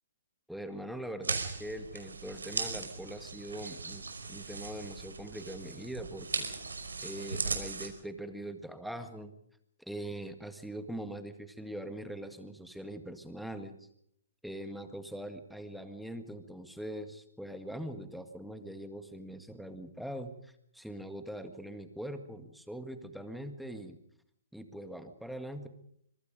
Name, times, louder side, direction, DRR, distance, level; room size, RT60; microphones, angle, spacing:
voice 1, 0.5-6.5 7.0-9.3 9.8-13.7 14.4-24.0 24.5-25.7, right 1 dB, ahead, 7 dB, 1.9 m, -42 dB
sound 1, 1.2-7.9, right 4 dB, 90° right, 5.4 m, -38 dB
25.5 x 23.5 x 5.3 m, 0.73 s
hypercardioid pair, 140°, 0 cm